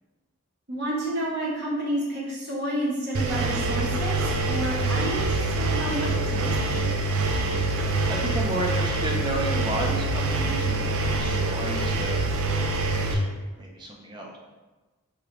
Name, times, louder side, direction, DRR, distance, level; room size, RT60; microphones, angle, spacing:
voice 1, 0.7-6.9, right 1 dB, 50° right, -5 dB, 1.0 m, -30 dB
Engine, 3.1-13.1, right 2 dB, 75° right, 0.5 m, -25 dB
voice 2, 8.0-14.4, right 1 dB, 20° right, -1 dB, 0.5 m, -33 dB
4.9 x 2.6 x 3.0 m, 1.2 s
head